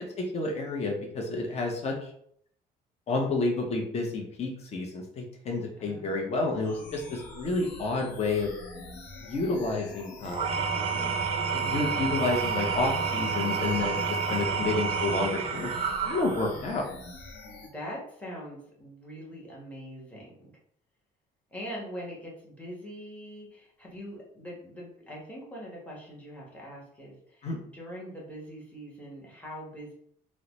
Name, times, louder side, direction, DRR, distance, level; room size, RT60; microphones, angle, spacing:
voice 1, 0.0-2.1 3.1-8.5 9.2-10.7 11.5-15.7 16.0-16.9 27.4-27.6, left 3 dB, 40° left, 1 dB, 0.7 m, -30 dB
voice 2, 5.8-6.7 10.9-11.5 14.3-14.7 16.4-16.9 17.6-20.5 21.5-29.9, equal, 10° left, -5 dB, 1.1 m, -43 dB
sound 1, 6.6-17.7, left 2 dB, 85° left, 0.8 m, -45 dB
Engine / Tools, 10.2-16.7, right 5 dB, 35° right, 0.4 m, -29 dB
3.9 x 2.1 x 3.0 m, 0.66 s
cardioid pair, 110°, 17 cm